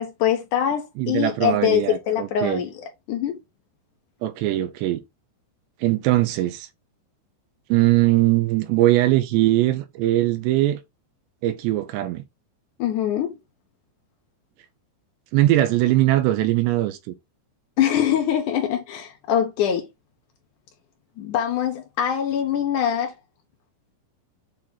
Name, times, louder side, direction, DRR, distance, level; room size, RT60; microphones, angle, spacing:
voice 1, 0.0-3.4 12.8-13.3 17.8-19.9 21.2-23.1, left 9 dB, 80° left, 1.8 m, -23 dB
voice 2, 1.0-2.6 4.2-5.0 5.8-6.7 7.7-10.8 11.4-12.2 15.3-17.0, right 15 dB, 80° right, 2.8 m, -20 dB
8.7 x 3.0 x 3.7 m
omnidirectional pair, 5.2 m